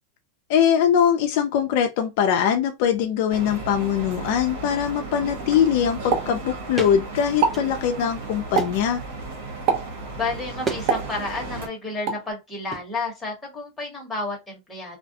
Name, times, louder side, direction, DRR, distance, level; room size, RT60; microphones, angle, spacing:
voice 1, 0.5-9.0, left 8 dB, 55° left, 0.3 m, -22 dB
sound 1, 3.3-11.7, right 3 dB, 80° right, 1.0 m, -35 dB
Explosion, 6.1-7.0 7.3-7.7 8.6-8.9 9.7-10.0 10.9-11.6 12.1-12.3, right 6 dB, 45° right, 0.7 m, -25 dB
sound 2, 6.8-7.0 7.4-8.1 8.5-8.9 10.6-10.9 11.2-11.6 12.7-12.9, right 4 dB, 10° right, 0.4 m, -32 dB
voice 2, 10.1-15.0, left 3 dB, 10° left, 1.0 m, -31 dB
2.4 x 2.1 x 2.7 m
supercardioid pair, 155°, 0 cm